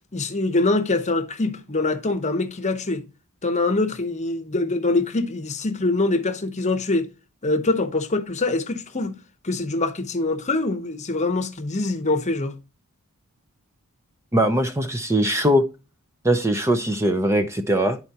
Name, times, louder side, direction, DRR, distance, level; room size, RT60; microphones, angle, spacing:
voice 1, 0.1-3.0 3.4-7.1 7.4-9.1 9.4-12.6, left 2 dB, 30° left, 0.9 m, -24 dB
voice 2, 14.3-15.6 16.2-18.0, right 1 dB, 15° right, 0.5 m, -21 dB
11.0 x 4.5 x 2.8 m
head